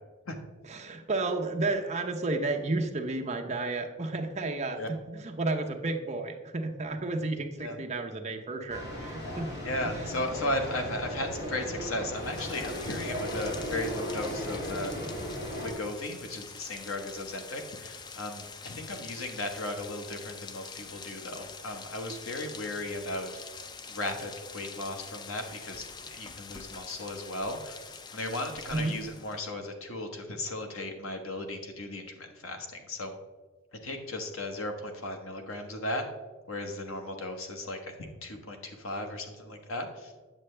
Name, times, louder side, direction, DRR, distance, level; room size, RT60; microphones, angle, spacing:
voice 1, 0.7-4.8 5.1-9.5 28.7-28.9, right 2 dB, 30° right, 3 dB, 0.7 m, -32 dB
sound 1, 8.7-15.7, equal, 55° left, 1.9 m, -36 dB
voice 2, 9.6-15.1 15.6-23.3 23.9-27.8 28.1-33.1 33.7-36.0 36.5-40.1, left 1 dB, 75° left, 4 dB, 1.2 m, -36 dB
Rain, 12.1-29.5, left 5 dB, 20° left, 0.3 m, -45 dB
8.9 x 6.8 x 3.3 m, 1.3 s
head